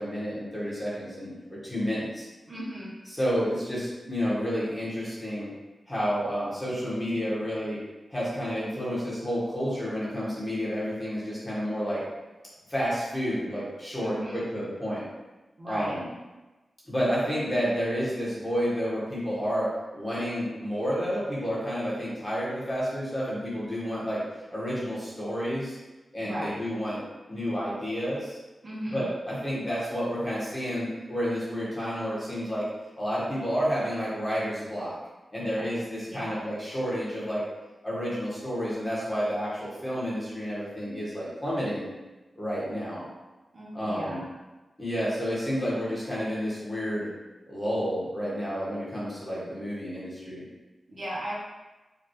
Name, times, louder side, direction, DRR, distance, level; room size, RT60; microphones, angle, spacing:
voice 1, 0.0-2.2 3.2-5.5 5.9-7.8 8.1-12.0 12.7-15.0 15.6-16.0 16.9-24.2 24.5-25.8 26.1-28.4 28.9-32.7 33.0-34.9 35.3-37.4 37.8-41.9 42.4-43.0 43.7-44.2 44.8-47.1 47.5-50.4, equal, 15° left, -8 dB, 1.4 m, -30 dB
voice 2, 2.5-2.9 14.0-14.5 15.6-16.0 26.2-26.6 28.6-29.1 35.6-35.7 36.1-36.4 43.5-44.2 50.9-51.4, equal, 45° right, -7 dB, 1.1 m, -36 dB
5.0 x 2.7 x 3.1 m, 1.1 s
wide cardioid pair, 145°, 0 cm